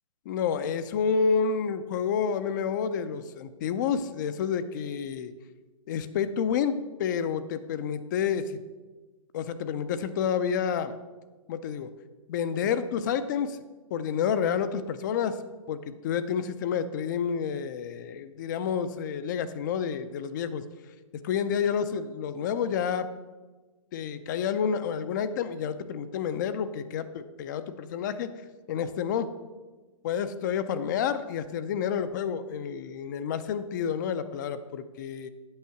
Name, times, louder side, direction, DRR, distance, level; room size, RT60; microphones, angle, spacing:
voice 1, 0.3-5.3 5.9-8.6 9.3-10.9 11.5-11.9 12.3-13.6 13.9-15.4 15.7-15.8 16.0-20.6 21.2-23.1 23.9-28.3 28.7-29.3 30.0-35.3, left 7 dB, 30° left, 12 dB, 0.4 m, -29 dB
8.5 x 5.4 x 5.9 m, 1.2 s
hypercardioid pair, 150°, 19 cm